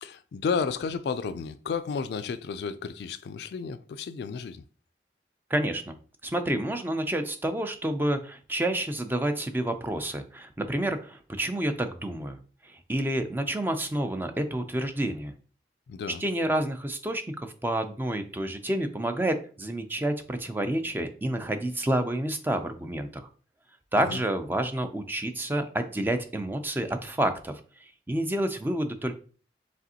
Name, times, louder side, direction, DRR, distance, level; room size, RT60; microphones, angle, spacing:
voice 1, 0.0-4.6 15.9-16.2 24.1-24.2, left 5 dB, 65° left, 0.3 m, -32 dB
voice 2, 5.5-6.0 6.2-12.4 12.6-15.3 16.2-23.2 23.9-27.5 28.1-29.1, right 1 dB, 10° right, 0.4 m, -29 dB
5.0 x 3.3 x 2.8 m
head